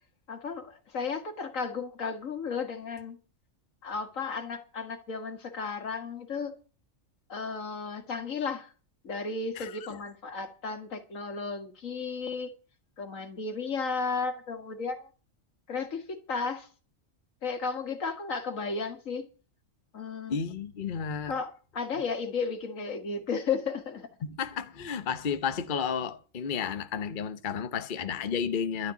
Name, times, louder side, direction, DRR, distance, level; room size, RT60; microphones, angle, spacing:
voice 1, 0.3-3.2 3.8-6.6 7.3-8.7 9.0-12.5 13.0-15.1 15.7-16.7 17.4-19.3 19.9-20.4 21.3-24.1, left 5 dB, 85° left, 2.1 m, -34 dB
voice 2, 20.3-21.3 24.2-28.9, left 7 dB, 45° left, 1.0 m, -32 dB
12.0 x 6.6 x 9.7 m
omnidirectional pair, 1.3 m